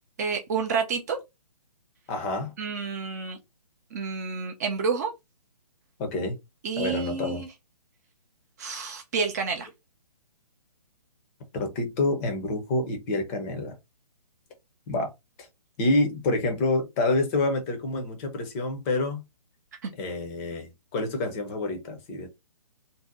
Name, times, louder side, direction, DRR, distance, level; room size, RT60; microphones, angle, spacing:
voice 1, 0.2-1.2 2.6-3.4 3.9-5.1 6.6-7.5 8.6-9.7 19.8-19.9, right 5 dB, 25° right, 0.4 m, -29 dB
voice 2, 2.1-2.5 6.0-6.4 6.8-7.4 11.5-13.7 14.9-15.1 15.4-15.5 15.8-19.2 20.0-22.3, left 2 dB, 20° left, 0.6 m, -27 dB
2.6 x 2.1 x 3.6 m
figure-of-eight pair, 140°, 20 cm